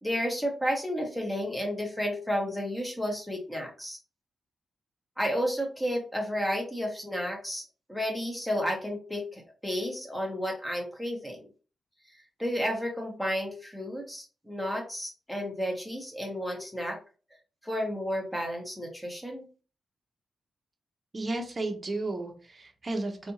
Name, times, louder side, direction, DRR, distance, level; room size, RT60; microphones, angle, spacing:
voice 1, 0.0-4.0 5.2-7.6 7.9-11.5 12.4-17.0 17.6-19.5, equal, 5° left, 0 dB, 1.2 m, -32 dB
voice 2, 21.1-23.3, right 2 dB, 30° right, 4 dB, 0.8 m, -33 dB
3.4 x 2.7 x 2.8 m, 0.37 s
cardioid pair, 95°, 0 cm